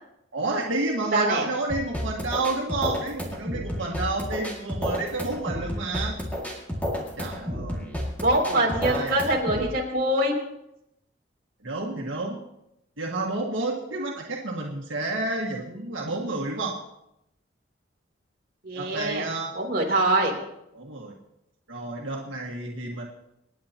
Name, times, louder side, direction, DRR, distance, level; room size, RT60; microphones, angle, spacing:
voice 1, 0.3-6.2 7.2-8.0 8.5-9.2 11.6-12.5 13.0-16.7 18.7-19.5 20.7-21.1 21.7-23.0, right 2 dB, 90° right, -2 dB, 1.8 m, -30 dB
voice 2, 1.1-1.5 8.2-10.4 18.6-19.3 19.6-20.3, right 1 dB, 50° right, -2 dB, 3.5 m, -24 dB
sound 1, 1.7-9.7, equal, 10° left, 2.2 m, -31 dB
27.0 x 9.7 x 3.0 m, 0.84 s
head